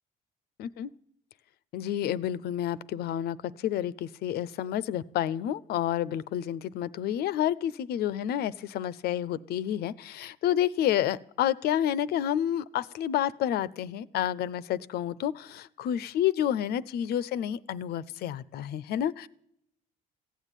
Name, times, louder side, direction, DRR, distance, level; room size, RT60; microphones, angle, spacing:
voice 1, 0.6-0.9 1.7-19.3, left 11 dB, 70° left, 17 dB, 0.6 m, -29 dB
15.5 x 8.2 x 9.1 m, 0.73 s
cardioid pair, 110°, 17 cm